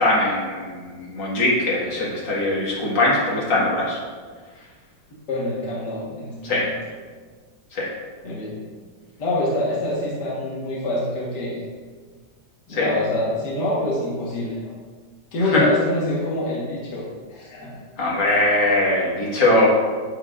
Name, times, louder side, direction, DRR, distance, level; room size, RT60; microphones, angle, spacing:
voice 1, 0.0-4.0 6.4-6.7 7.7-7.9 12.7-12.9 15.5-15.6 18.0-19.7, left 1 dB, 85° left, -5 dB, 2.6 m, -21 dB
voice 2, 5.3-6.8 8.2-8.6 9.2-11.6 12.7-14.7 15.3-17.8, left 1 dB, 65° left, -5 dB, 2.2 m, -26 dB
9.4 x 9.1 x 2.6 m, 1.5 s
omnidirectional pair, 2.0 m